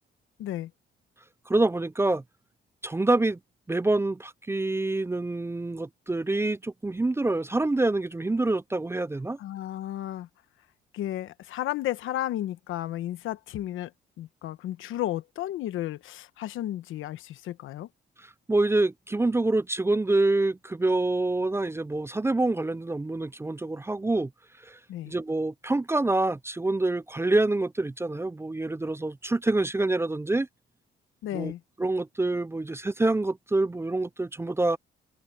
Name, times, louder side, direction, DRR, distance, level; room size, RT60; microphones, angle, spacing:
voice 1, 0.4-0.7 9.4-10.3 10.9-13.9 14.2-17.9 24.9-25.1 31.2-31.6, left 13 dB, 85° left, 1.2 m, -33 dB
voice 2, 1.5-2.2 2.8-3.4 3.7-9.4 18.5-24.3 24.7-24.8 25.1-30.5 31.3-31.5 31.8-34.8, right 2 dB, 15° right, 0.5 m, -26 dB
cardioid pair, 90°, 20 cm